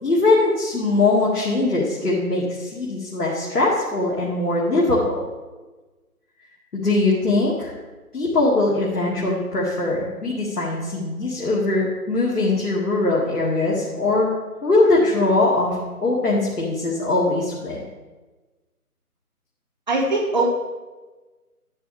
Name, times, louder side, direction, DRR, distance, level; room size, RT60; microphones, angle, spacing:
voice 1, 0.0-5.2 6.7-7.7 8.1-14.3 14.6-17.8, left 2 dB, 80° left, -5 dB, 2.2 m, -21 dB
voice 2, 19.9-20.4, right 2 dB, 30° right, -3 dB, 1.9 m, -21 dB
11.0 x 8.2 x 3.4 m, 1.2 s
figure-of-eight pair, 170°, 45 cm